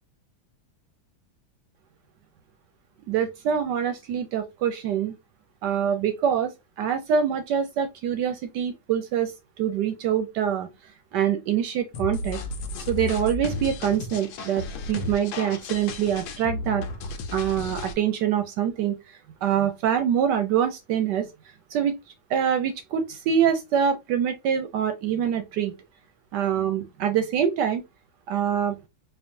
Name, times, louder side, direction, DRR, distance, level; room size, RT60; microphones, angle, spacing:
voice 1, 3.1-5.1 5.6-6.5 6.8-9.3 9.6-10.7 11.1-12.4 12.9-16.8 17.3-19.0 19.4-21.3 21.7-21.9 22.3-25.7 26.3-27.8 28.3-28.8, right 8 dB, 70° right, 1.1 m, -25 dB
sound 1, 11.9-17.9, left 2 dB, 85° left, 1.5 m, -33 dB
4.4 x 2.7 x 2.6 m
omnidirectional pair, 2.1 m